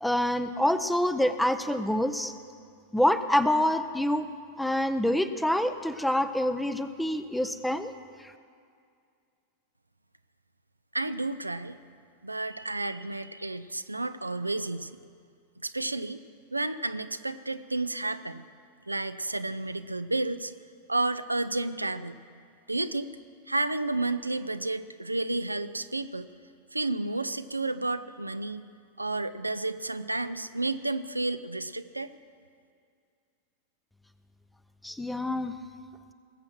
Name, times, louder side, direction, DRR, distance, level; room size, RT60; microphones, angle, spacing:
voice 1, 0.0-2.3 2.9-4.3 4.6-7.9 34.8-35.5, left 1 dB, 5° left, 11 dB, 0.6 m, -26 dB
voice 2, 10.9-11.8 12.2-15.0 15.6-16.2 16.5-18.4 18.9-20.5 20.9-22.2 22.7-23.1 23.5-26.3 26.7-28.6 29.0-32.1, right 2 dB, 85° right, 11 dB, 0.4 m, -31 dB
20.0 x 7.7 x 6.1 m, 2.3 s
figure-of-eight pair, 90°, 0 cm